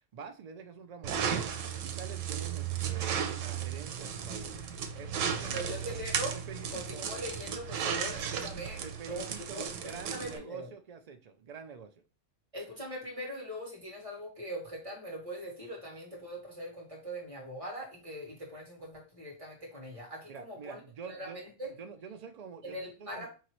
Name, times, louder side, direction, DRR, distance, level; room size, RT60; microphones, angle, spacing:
voice 1, 0.1-1.5 1.8-4.5 4.9-6.0 6.3-7.1 8.3-8.4 8.8-11.9 20.3-21.4 21.8-23.3, right 6 dB, 75° right, 6 dB, 0.3 m, -46 dB
sound 1, 1.0-10.4, right 8 dB, 90° right, 1.0 m, -35 dB
voice 2, 5.4-6.4 6.7-8.8 9.1-9.3 9.5-10.7 12.5-21.7 22.6-23.3, equal, 25° right, -2 dB, 1.4 m, -41 dB
4.7 x 2.9 x 3.0 m, 0.34 s
omnidirectional pair, 1.3 m